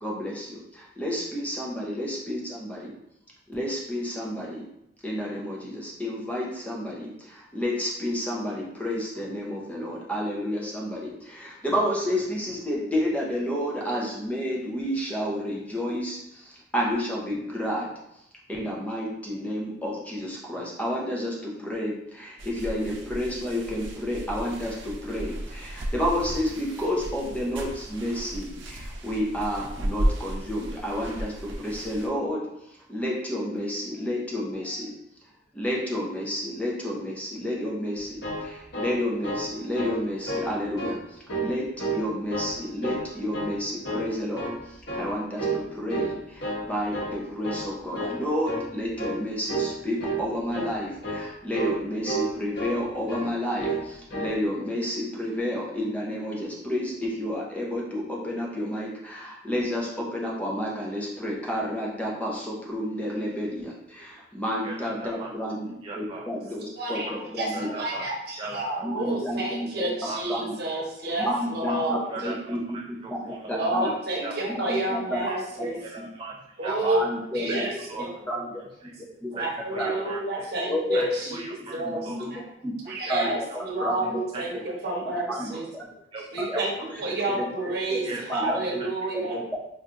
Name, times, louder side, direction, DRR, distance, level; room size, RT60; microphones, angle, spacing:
voice 1, 0.0-2.9 3.5-4.7 5.0-34.9 35.5-67.7 68.8-69.9 70.3-70.5 71.2-72.6 73.1-73.9 74.5-75.2 76.0-76.1 77.0-77.7 78.3-78.6 79.2-79.3 79.8-80.1 80.7-82.7 83.1-83.5 83.8-84.6 85.3-85.9 86.5-86.6 86.9-87.0 87.3-87.5 87.9-88.9 89.1-89.6, equal, 10° left, -3 dB, 0.6 m, -30 dB
sound 1, 22.4-32.1, right 1 dB, 80° right, 0.6 m, -34 dB
sound 2, 38.0-39.5 39.8-40.0 40.3-41.0 41.3-42.0 42.3-43.1 43.3-43.6 43.8-44.6 44.9-45.1 45.4-45.6 45.9-46.6 46.9-47.2 47.4-47.7 47.9-48.2 48.5-48.7 49.0-49.2 49.5-49.7 50.0-50.2 50.5-50.7 51.0-51.3 51.5-51.8 52.1-52.8 53.1-53.3 53.6-53.8 54.1-54.4, right 2 dB, 65° left, 1.0 m, -30 dB
voice 2, 64.6-65.3 65.8-66.3 66.9-67.2 67.5-68.9 70.1-70.2 71.6-71.8 72.1-73.9 74.2-74.6 75.3-75.4 75.7-77.1 77.5-78.1 78.8-78.9 79.4-80.5 80.9-82.2 82.9-83.9 84.3-84.4 84.8-85.0 85.5-85.6 86.1-87.3 88.0-88.5 88.8-88.9 89.2-89.4, right 3 dB, 30° right, -1 dB, 0.3 m, -38 dB
voice 3, 66.8-67.1 67.4-67.5 67.8-72.0 73.5-75.8 76.6-77.0 77.3-77.7 78.0-78.1 79.3-82.1 82.3-82.4 82.9-85.7 86.3-89.4, right 2 dB, 60° right, -2 dB, 0.9 m, -30 dB
4.3 x 2.5 x 2.5 m, 0.81 s
head